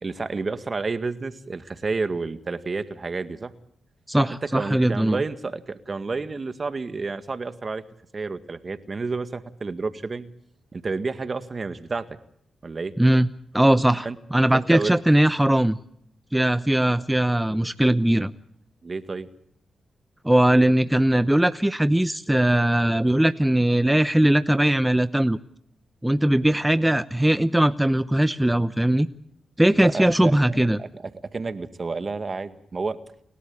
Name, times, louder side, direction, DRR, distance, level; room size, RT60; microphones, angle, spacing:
voice 1, 0.0-3.5 4.3-7.8 8.1-10.3 10.7-12.1 12.6-12.9 14.0-14.2 14.5-15.0 17.5-17.7 18.8-19.3 29.7-33.0, right 4 dB, 45° right, 11 dB, 1.9 m, -30 dB
voice 2, 4.1-5.2 13.0-13.3 13.5-15.8 16.3-18.3 20.2-25.4 26.0-29.1 29.6-30.8, right 1 dB, 10° right, 13 dB, 0.8 m, -20 dB
29.0 x 12.5 x 8.6 m, 0.70 s
supercardioid pair, 50°, 0 cm